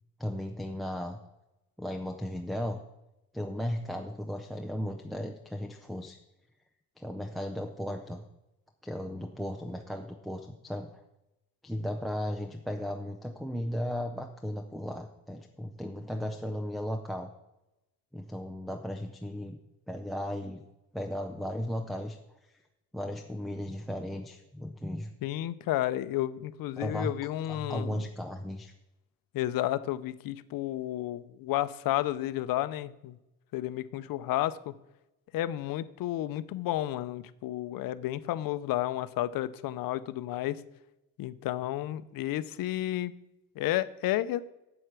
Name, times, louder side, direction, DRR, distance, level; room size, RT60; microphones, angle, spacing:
voice 1, 0.2-1.2 1.8-2.8 3.3-6.2 7.0-8.2 8.8-11.0 11.6-17.3 18.1-19.6 19.9-20.6 20.9-22.2 22.9-25.1 26.8-27.1 27.5-28.7, equal, ahead, 6 dB, 0.4 m, -35 dB
voice 2, 25.2-28.0 29.3-33.2 33.5-34.7 35.3-40.6 41.2-43.1 43.6-44.4, left 14 dB, 75° left, 15 dB, 0.6 m, -32 dB
8.0 x 7.9 x 5.9 m, 0.93 s
cardioid pair, 155°, 35 cm